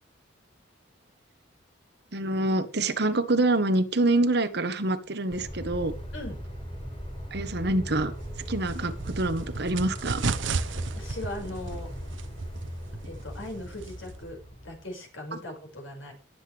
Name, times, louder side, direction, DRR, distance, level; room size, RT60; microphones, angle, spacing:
voice 1, 2.1-5.9 7.3-8.1 8.5-10.2, right 2 dB, 55° right, 10 dB, 1.3 m, -26 dB
sound 1, 5.3-14.9, equal, 30° left, 5.9 m, -39 dB
sound 2, 8.1-14.3, right 4 dB, 70° right, 0.9 m, -34 dB
voice 2, 10.9-11.9 13.0-16.1, left 1 dB, 85° left, 1 dB, 6.0 m, -39 dB
18.5 x 7.9 x 3.5 m, 0.32 s
head